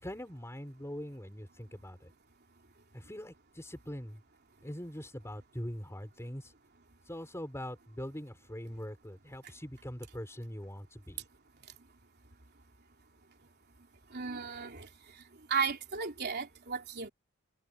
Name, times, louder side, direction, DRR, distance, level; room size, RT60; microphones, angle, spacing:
voice 1, 0.0-2.1 2.9-4.2 4.6-6.5 7.1-11.2, equal, 15° left, 5.0 m, -42 dB
voice 2, 14.1-14.9 15.5-17.1, right 5 dB, 50° right, 3.3 m, -34 dB
head